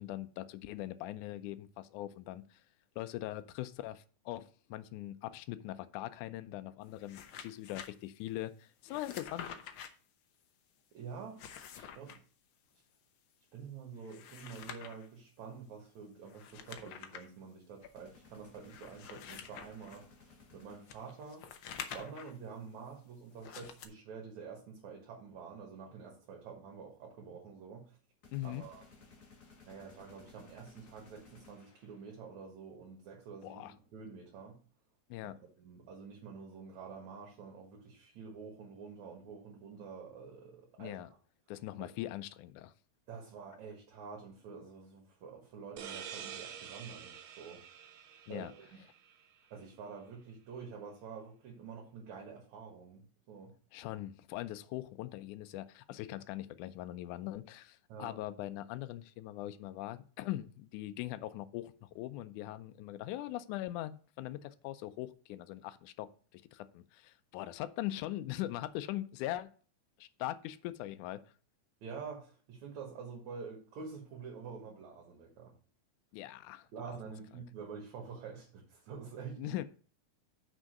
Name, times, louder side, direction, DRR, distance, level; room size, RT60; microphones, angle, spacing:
voice 1, 0.0-2.6 3.0-9.5 28.3-28.6 33.4-33.7 35.1-35.4 40.8-41.1 41.5-42.7 48.3-48.5 53.7-69.5 70.0-71.2 76.1-76.7 79.4-79.7, left 15 dB, 85° left, 12 dB, 2.1 m, -41 dB
sound 1, 6.9-7.9 8.9-9.9 11.2-12.2 14.0-15.1 16.3-17.3 17.8-17.9 18.6-20.0 20.9-22.4 23.4-23.9, left 8 dB, 70° left, 1.2 m, -47 dB
voice 2, 10.9-11.5 11.8-12.2 13.5-21.5 21.9-28.0 28.4-28.8 29.6-34.6 35.2-35.3 35.6-41.0 41.8-41.9 43.1-47.6 48.3-48.7 49.5-53.5 57.9-58.2 71.8-75.5 76.7-79.5, right 5 dB, 70° right, 0 dB, 3.0 m, -48 dB
sound 2, 17.9-21.3 28.2-32.3, left 4 dB, 40° left, 1.8 m, -59 dB
sound 3, 45.8-49.2, right 9 dB, 90° right, 1.1 m, -47 dB
6.2 x 5.6 x 6.4 m, 0.41 s
omnidirectional pair, 3.5 m